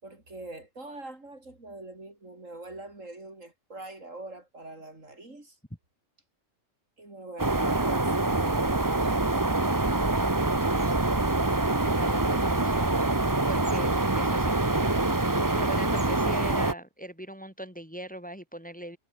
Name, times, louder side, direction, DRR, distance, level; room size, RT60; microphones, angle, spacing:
voice 1, 0.0-5.6 7.0-9.6, right 2 dB, 80° right, 6.1 m, -44 dB
sound 1, 7.4-16.7, right 2 dB, 15° right, 1.2 m, -25 dB
voice 2, 11.8-13.2 13.5-19.0, right 1 dB, 5° left, 3.3 m, -41 dB
omnidirectional pair, 1.3 m